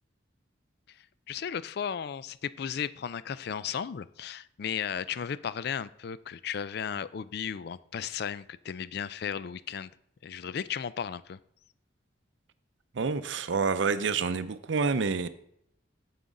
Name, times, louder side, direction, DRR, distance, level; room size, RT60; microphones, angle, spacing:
voice 1, 1.3-9.9 10.2-11.4, left 7 dB, 55° left, 17 dB, 0.3 m, -35 dB
voice 2, 12.9-15.3, right 5 dB, 70° right, 13 dB, 0.5 m, -28 dB
9.1 x 7.2 x 3.8 m, 0.71 s
head